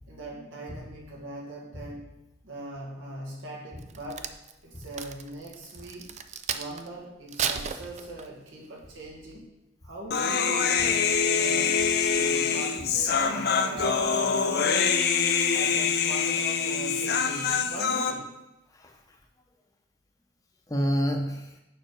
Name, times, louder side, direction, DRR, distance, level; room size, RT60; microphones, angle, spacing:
voice 1, 0.1-2.1 2.4-4.3 4.6-6.1 6.5-9.5 9.8-11.8 12.2-15.0 15.5-18.3, right 1 dB, 85° right, -3 dB, 1.8 m, -41 dB
Crack, 3.8-6.9 7.3-8.5 9.0-9.3, right 7 dB, 35° right, 0.4 m, -34 dB
Human voice, 10.1-18.1, left 6 dB, 55° left, 0.6 m, -25 dB
voice 2, 15.1-15.6 18.7-19.2 20.7-21.6, equal, 20° left, 2 dB, 0.9 m, -30 dB
6.7 x 5.3 x 4.6 m, 0.92 s
head